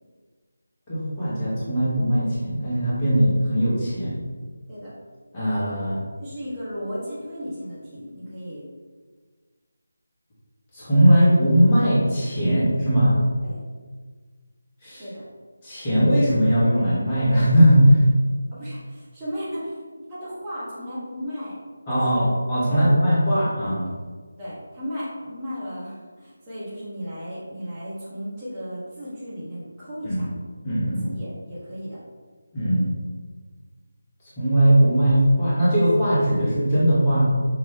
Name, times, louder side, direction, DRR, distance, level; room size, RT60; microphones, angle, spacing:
voice 1, 0.9-4.2 5.3-6.0 10.7-13.2 14.8-15.0 15.6-18.0 21.9-22.2 22.5-23.9 30.0-30.3 30.6-31.1 32.5-32.9 34.4-37.2, equal, 20° left, -9 dB, 1.2 m, -19 dB
voice 2, 6.2-8.6 13.4-13.6 15.0-15.2 18.5-19.8 20.1-21.6 21.9-22.3 22.6-22.9 23.6-23.7 24.4-30.3 31.1-32.0, equal, 15° right, -11 dB, 1.0 m, -35 dB
5.4 x 2.4 x 3.6 m, 1.5 s
figure-of-eight pair, 160°, 0 cm